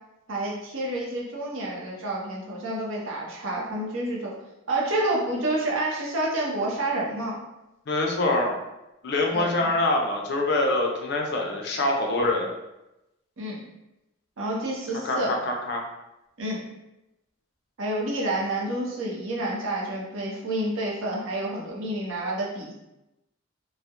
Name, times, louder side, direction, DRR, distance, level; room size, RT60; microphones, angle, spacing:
voice 1, 0.3-4.3 4.7-7.4 9.3-9.7 13.4-13.6 14.4-15.3 16.4-16.6 17.8-22.7, right 1 dB, 70° right, -3 dB, 0.6 m, -29 dB
voice 2, 7.9-8.6 9.0-12.5 15.0-15.9, left 2 dB, 55° left, 1 dB, 0.4 m, -25 dB
2.3 x 2.0 x 2.7 m, 0.94 s
head